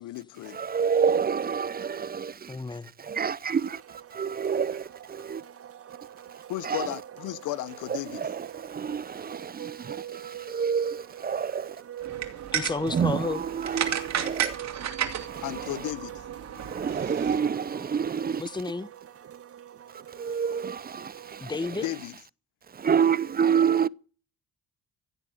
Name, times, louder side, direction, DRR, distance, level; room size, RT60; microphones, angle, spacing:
voice 1, 0.0-0.6 6.5-8.3 15.4-16.2 21.8-22.1, left 16 dB, 85° left, 0.9 m, -34 dB
voice 2, 0.5-2.5 3.0-5.4 6.6-6.9 8.1-11.8 12.9-14.6 15.3-15.4 16.6-18.4 20.2-21.5 22.7-23.9, right 7 dB, 30° right, 0.6 m, -28 dB
voice 3, 2.5-2.9 12.5-13.4 18.4-18.9 21.4-21.9, left 3 dB, 15° left, 0.9 m, -31 dB
sound 1, 3.5-21.5, right 11 dB, 50° right, 1.3 m, -44 dB
sound 2, 12.0-17.4, right 9 dB, 65° right, 3.0 m, -33 dB
16.0 x 7.8 x 7.9 m
cardioid pair, 90°, 30 cm